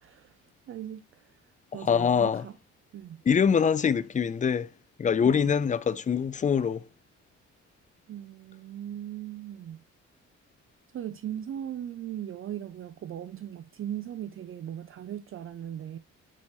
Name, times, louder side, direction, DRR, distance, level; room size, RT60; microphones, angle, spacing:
voice 1, 0.0-2.6 2.9-3.2 5.2-5.5 8.1-9.8 10.9-16.0, right 10 dB, 45° right, 0.5 m, -39 dB
voice 2, 1.9-2.4 3.3-4.7 5.0-6.8, left 7 dB, 25° left, 0.4 m, -24 dB
6.2 x 4.3 x 4.1 m
cardioid pair, 90°, 30 cm